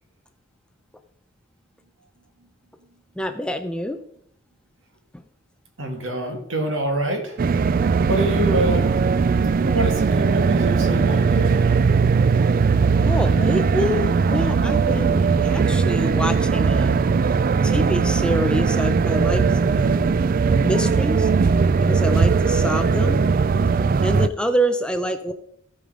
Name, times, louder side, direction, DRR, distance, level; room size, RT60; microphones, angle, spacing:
voice 1, 3.2-4.0 13.0-17.0 17.6-19.4 19.8-20.1 20.6-21.3 21.8-23.2 24.0-25.3, equal, 5° left, 7 dB, 0.6 m, -26 dB
voice 2, 5.8-9.0 9.6-11.8, right 1 dB, 75° right, 4 dB, 2.3 m, -26 dB
sound 1, 7.4-24.3, right 5 dB, 45° right, 0.3 m, -19 dB
15.5 x 5.5 x 4.9 m, 0.70 s
head